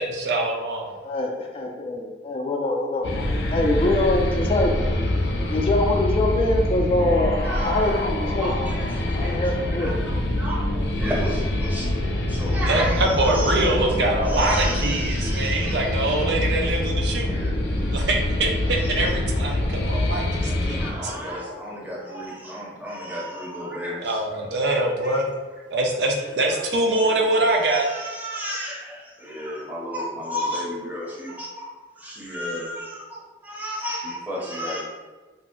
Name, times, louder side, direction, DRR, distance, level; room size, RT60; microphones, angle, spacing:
voice 1, 0.0-1.0 12.7-17.4 17.9-21.1 24.0-25.3 25.7-27.9, right 2 dB, 70° right, 1 dB, 0.4 m, -24 dB
voice 2, 1.0-4.9 5.5-8.7 9.1-9.9, left 1 dB, 30° left, 1 dB, 0.3 m, -24 dB
sound 1, 3.0-20.9, left 1 dB, 85° left, 0.5 m, -25 dB
voice 3, 7.4-8.0 8.4-11.9 12.3-15.9 17.0-18.0 18.8-19.1 19.8-24.5 25.0-25.3 26.2-26.6 26.9-27.1 27.6-34.8, equal, 10° right, -4 dB, 0.6 m, -33 dB
2.5 x 2.0 x 3.6 m, 1.3 s
head